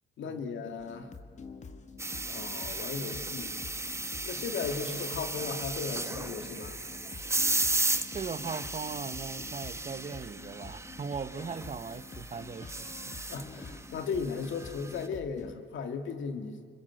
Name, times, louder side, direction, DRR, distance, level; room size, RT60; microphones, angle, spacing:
voice 1, 0.2-1.1 2.2-3.6 4.2-6.8 13.2-16.6, left 5 dB, 75° left, 2.5 m, -36 dB
sound 1, 0.8-15.5, left 4 dB, 35° left, 1.9 m, -48 dB
sound 2, 2.0-15.1, right 2 dB, 15° right, 1.1 m, -35 dB
voice 2, 8.1-12.9, right 5 dB, 35° right, 1.1 m, -39 dB
27.0 x 23.5 x 7.9 m
cardioid pair, 90°, 20 cm